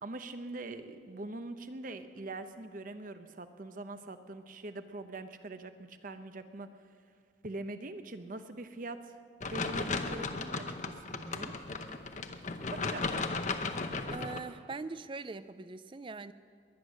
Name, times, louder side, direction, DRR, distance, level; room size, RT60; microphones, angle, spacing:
voice 1, 0.0-6.7 7.4-9.2 9.4-11.5 12.7-13.4, right 2 dB, 45° right, 9 dB, 0.8 m, -43 dB
sound 1, 9.4-14.4, left 3 dB, 40° left, 0.8 m, -35 dB
voice 2, 14.1-16.3, right 3 dB, 25° right, 15 dB, 0.4 m, -42 dB
22.0 x 9.9 x 6.4 m, 2.3 s
head